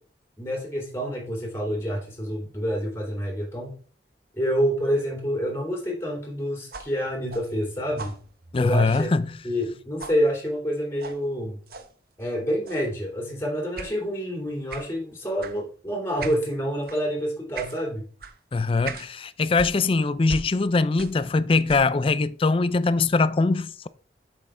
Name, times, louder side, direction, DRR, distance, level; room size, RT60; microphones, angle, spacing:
voice 1, 0.4-3.8 4.3-8.2 8.6-9.1 9.4-11.6 12.2-18.0, equal, 15° left, 2.9 m, -28 dB
sound 1, 6.7-9.7 10.0-10.2 11.0-11.2 11.7-11.9 12.7-12.9 13.8-14.0 14.7-14.9 15.4-15.6 16.2-16.4 16.8-17.0 17.5-17.8 18.2-18.4 18.8-19.1 19.5-21.3 21.6-22.0, right 4 dB, 55° right, 0.9 m, -39 dB
voice 2, 8.5-9.3 18.5-23.9, left 3 dB, 30° left, 0.4 m, -22 dB
7.8 x 6.4 x 3.7 m
head